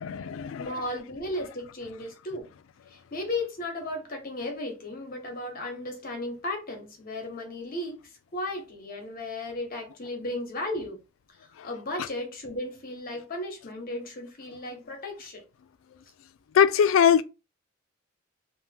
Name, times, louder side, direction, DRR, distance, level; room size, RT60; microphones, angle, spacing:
voice 1, 0.0-0.7 16.5-17.2, left 8 dB, 80° left, 0.3 m, -21 dB
voice 2, 0.6-2.5 2.9-8.0 8.3-11.0 11.6-15.4, left 1 dB, 45° left, 0.9 m, -35 dB
2.8 x 2.1 x 3.4 m
head